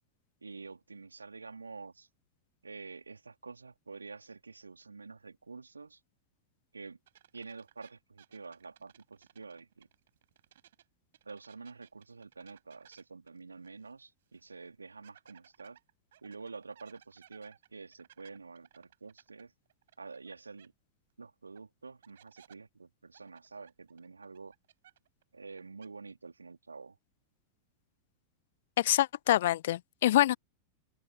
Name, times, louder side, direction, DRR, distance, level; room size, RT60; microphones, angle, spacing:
voice 1, 0.4-2.1 2.6-6.0 6.7-7.0 7.3-9.9 11.2-15.8 16.2-19.5 20.0-20.7 21.2-24.5 25.3-27.0, right 4 dB, 80° right, 3.8 m, -48 dB
sound 1, 7.1-10.8 11.1-14.0 14.3-14.4 15.0-20.3 20.6-20.7 21.6-21.7 22.0-22.6 23.1-25.2 25.5-25.9, right 11 dB, 60° right, 7.9 m, -61 dB
voice 2, 28.8-30.4, left 14 dB, 55° left, 0.5 m, -26 dB
open air
figure-of-eight pair, 90°, 0 cm